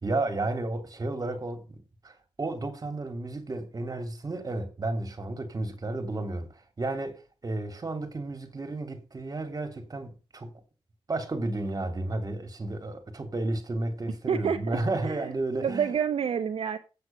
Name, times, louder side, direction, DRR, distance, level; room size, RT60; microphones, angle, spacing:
voice 1, 0.0-7.2 7.4-10.5 11.1-15.9, right 2 dB, 40° right, 2.9 m, -32 dB
voice 2, 14.3-15.3 15.6-16.8, right 7 dB, 80° right, 0.8 m, -28 dB
8.5 x 7.9 x 5.9 m
cardioid pair, 80°, 10 cm